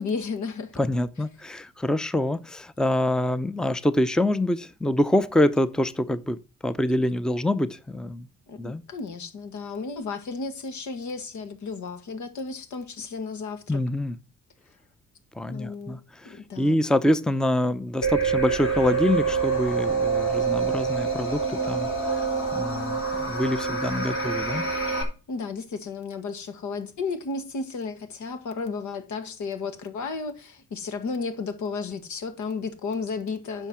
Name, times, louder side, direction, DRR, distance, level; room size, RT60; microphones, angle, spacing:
voice 1, 0.0-0.8 8.5-13.8 15.5-16.0 16.2-16.8 25.3-33.7, left 4 dB, 75° left, 1.9 m, -33 dB
voice 2, 0.8-8.3 8.6-8.8 13.7-14.2 15.4-21.9 22.5-24.6, left 1 dB, ahead, 0.6 m, -25 dB
sound 1, 18.0-25.0, right 5 dB, 45° left, 4.3 m, -26 dB
10.0 x 5.8 x 6.1 m
cardioid pair, 90°, 30 cm